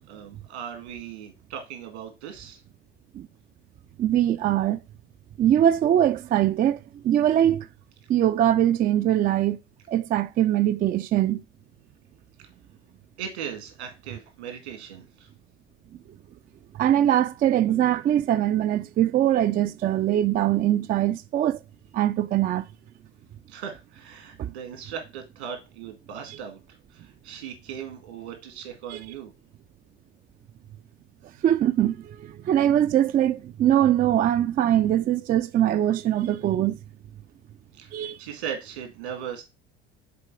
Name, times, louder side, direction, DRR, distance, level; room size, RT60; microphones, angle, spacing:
voice 1, 0.1-2.6 13.2-15.3 23.5-26.6 26.9-29.3 37.8-39.4, right 8 dB, 80° right, 2.1 m, -38 dB
voice 2, 4.0-4.8 5.4-6.8 7.0-7.7 8.1-9.6 9.9-11.4 16.8-21.6 21.9-22.7 24.4-24.5 28.9-29.0 31.4-36.8 37.9-38.2, right 11 dB, 30° right, 0.3 m, -22 dB
6.9 x 4.2 x 4.7 m
hypercardioid pair, 60°, 33 cm